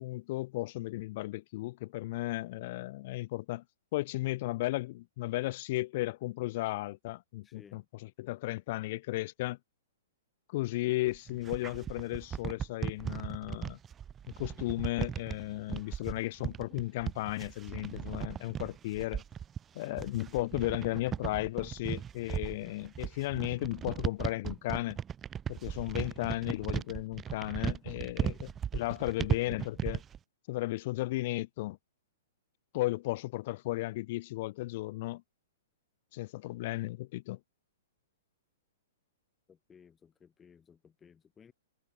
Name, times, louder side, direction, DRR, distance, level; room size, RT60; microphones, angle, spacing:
voice 1, 0.0-3.6 3.9-9.6 10.5-13.8 14.4-19.2 19.7-25.0 25.5-30.0 30.5-31.8 32.7-35.2 36.1-37.4, left 18 dB, 50° left, 4.6 m, -35 dB
voice 2, 7.4-7.9 19.8-20.2 28.2-28.5 39.5-41.5, left 7 dB, 15° left, 5.7 m, -58 dB
sound 1, 11.1-30.2, right 8 dB, 20° right, 1.7 m, -37 dB
hypercardioid pair, 130°, 0 cm